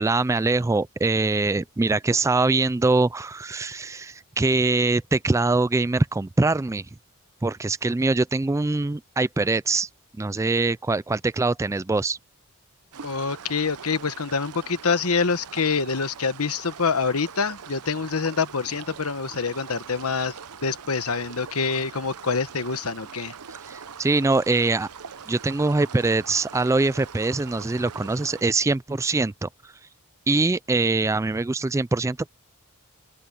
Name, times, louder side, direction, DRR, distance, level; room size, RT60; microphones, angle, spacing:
voice 1, 0.0-6.9 7.4-9.9 10.2-12.2 23.7-24.9 25.3-29.7 30.3-32.3, right 3 dB, 15° right, 0.3 m, -23 dB
sound 1, 12.9-28.4, right 6 dB, 90° right, 0.8 m, -42 dB
voice 2, 13.0-20.4 20.6-23.3, left 5 dB, 75° left, 1.2 m, -26 dB
open air
head